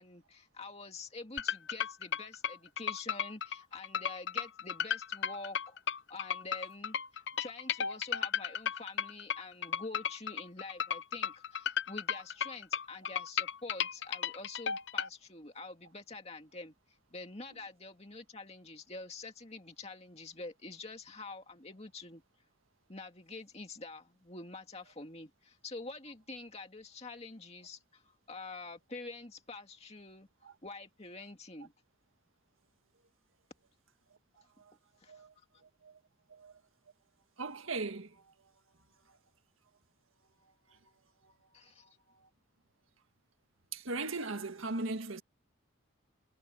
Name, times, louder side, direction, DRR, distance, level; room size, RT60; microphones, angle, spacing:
voice 1, 0.0-5.8 6.1-16.7 17.1-22.2 22.9-28.0 28.3-30.3 30.6-31.7 35.0-35.2 41.5-41.9, left 3 dB, 30° left, 2.3 m, -47 dB
sound 1, 1.4-15.1, left 8 dB, 55° left, 0.7 m, -34 dB
voice 2, 37.4-38.1 43.7-45.2, right 3 dB, 75° right, 1.8 m, -37 dB
head